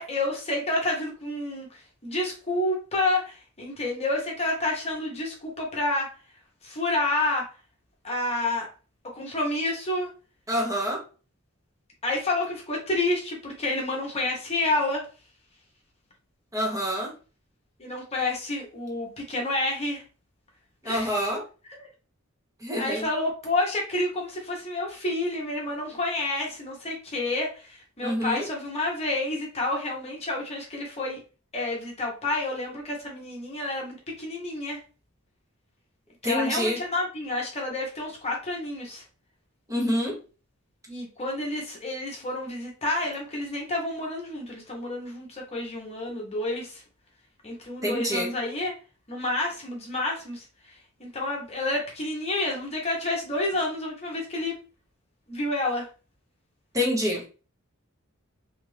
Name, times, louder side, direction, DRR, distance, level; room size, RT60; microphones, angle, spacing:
voice 1, 0.0-6.1 6.6-7.5 8.0-8.7 9.1-10.1 12.0-15.0 17.8-20.0 20.8-21.3 21.8-21.9 22.7-31.2 31.5-34.8 36.2-39.0 40.9-46.8 47.4-48.7 49.1-50.4 51.0-54.5 55.3-55.9, left 2 dB, 30° left, -1 dB, 0.9 m, -29 dB
voice 2, 10.5-11.0 16.5-17.1 20.8-21.4 22.6-23.1 28.0-28.4 36.2-36.8 39.7-40.2 47.8-48.3 56.7-57.2, equal, 15° right, -3 dB, 0.9 m, -26 dB
2.8 x 2.5 x 3.1 m, 0.35 s
head